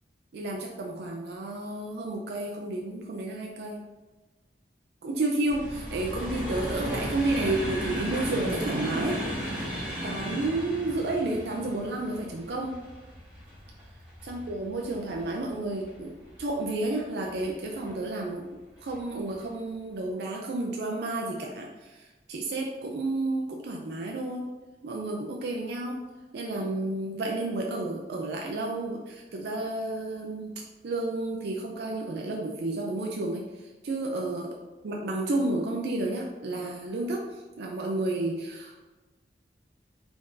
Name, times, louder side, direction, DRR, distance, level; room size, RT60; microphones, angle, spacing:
voice 1, 0.3-3.8 5.0-9.2 10.0-12.8 14.2-16.1 16.4-18.5 18.8-24.5 24.8-26.0 26.3-30.5 30.8-33.4 33.8-34.6 34.8-37.2 37.6-38.8, right 2 dB, 70° right, 0 dB, 0.4 m, -31 dB
sound 1, 5.5-16.6 17.2-17.9 18.8-19.0 19.3-19.4, equal, 10° right, 1.0 m, -35 dB
3.6 x 3.4 x 2.6 m, 1.2 s
head